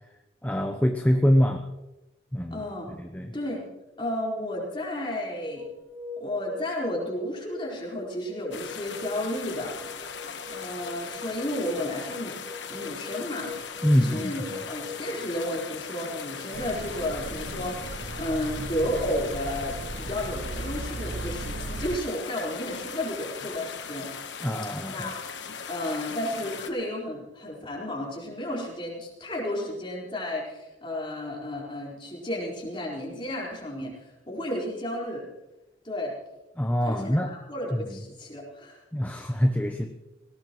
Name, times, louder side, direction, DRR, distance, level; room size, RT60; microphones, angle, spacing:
voice 1, 0.4-1.6 2.3-2.6 3.0-3.3 13.8-14.6 24.4-25.1 36.6-37.3 37.7-38.0 38.9-39.9, equal, 10° left, 4 dB, 0.7 m, -24 dB
voice 2, 2.5-2.9 3.3-3.6 4.0-5.7 6.2-9.8 10.5-12.3 12.7-13.5 13.9-24.1 24.9-25.1 25.7-35.2 35.8-36.1 36.8-38.8, left 1 dB, 25° left, -3 dB, 4.4 m, -32 dB
sound 1, 5.5-21.1, left 4 dB, 15° right, 4.8 m, -44 dB
sound 2, 8.5-26.7, left 6 dB, 70° left, 1.2 m, -39 dB
sound 3, 16.5-22.0, right 2 dB, 45° right, 0.6 m, -36 dB
18.5 x 18.0 x 3.1 m, 1.0 s
head